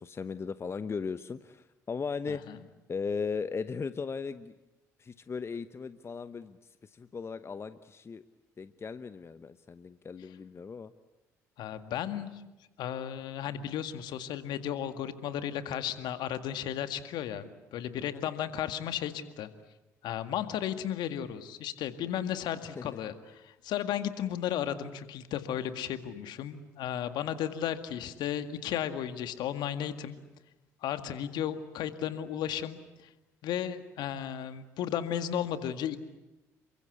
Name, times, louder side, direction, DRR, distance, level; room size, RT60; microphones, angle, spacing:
voice 1, 0.0-2.4 2.9-4.5 5.0-6.6 6.8-8.2 8.6-10.9 18.0-18.2 22.8-22.9, left 5 dB, 30° left, 12 dB, 1.0 m, -37 dB
voice 2, 2.3-2.6 11.6-12.4 12.8-19.5 20.0-30.2 30.8-33.1 33.4-36.0, left 10 dB, 60° left, 10 dB, 2.0 m, -34 dB
28.5 x 24.0 x 8.4 m, 1.0 s
figure-of-eight pair, 55°, 8 cm